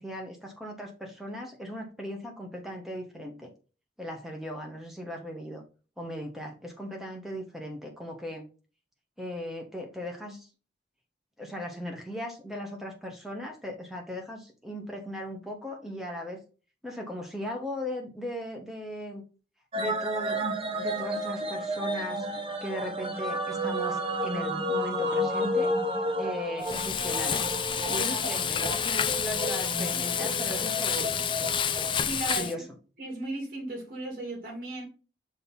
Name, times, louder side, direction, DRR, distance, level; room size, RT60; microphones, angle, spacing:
voice 1, 0.0-3.5 4.0-5.6 6.0-8.5 9.2-10.5 11.4-16.4 16.8-19.2 19.7-20.4 20.8-22.3 22.6-25.7 26.2-27.4 27.9-31.2 32.3-32.6, left 1 dB, ahead, 1.3 m, -38 dB
sound 1, 19.7-32.0, equal, 30° right, 1.0 m, -31 dB
Frying (food), 26.6-32.5, left 8 dB, 25° left, 0.4 m, -29 dB
voice 2, 27.9-28.3 32.0-32.7 33.0-34.8, right 2 dB, 50° right, 2.2 m, -36 dB
6.3 x 3.1 x 5.4 m
head